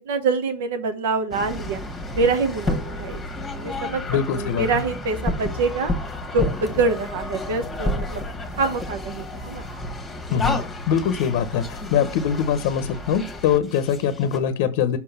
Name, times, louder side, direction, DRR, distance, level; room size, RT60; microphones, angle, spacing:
voice 1, 0.0-1.8 2.1-5.9 6.3-8.2 8.6-9.6, right 4 dB, 85° right, 7 dB, 0.9 m, -25 dB
sound 1, 1.3-14.4, left 2 dB, 10° left, 1.2 m, -31 dB
voice 2, 4.1-4.8 10.3-10.6 10.9-15.0, left 8 dB, 60° left, 11 dB, 0.7 m, -23 dB
5.8 x 3.9 x 5.7 m, 0.34 s
supercardioid pair, 155°, 0 cm